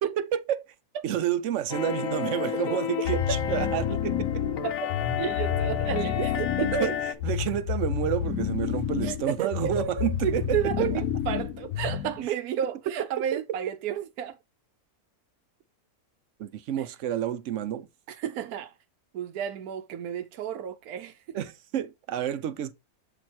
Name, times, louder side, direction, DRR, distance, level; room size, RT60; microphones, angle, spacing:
voice 1, 0.0-0.7 1.0-4.4 6.2-6.3 6.8-7.0 7.2-10.6 12.9-13.0 13.3-13.4 16.4-17.9 21.3-22.7, right 10 dB, 65° right, 0.8 m, -30 dB
sound 1, 1.7-7.1, left 8 dB, 65° left, 1.1 m, -31 dB
sound 2, 3.0-12.3, left 9 dB, 85° left, 1.3 m, -30 dB
voice 2, 5.2-6.9 9.0-14.4 16.8-16.9 18.1-18.7 19.1-21.2, right 9 dB, 80° right, 1.1 m, -32 dB
7.8 x 3.1 x 4.2 m
omnidirectional pair, 1.6 m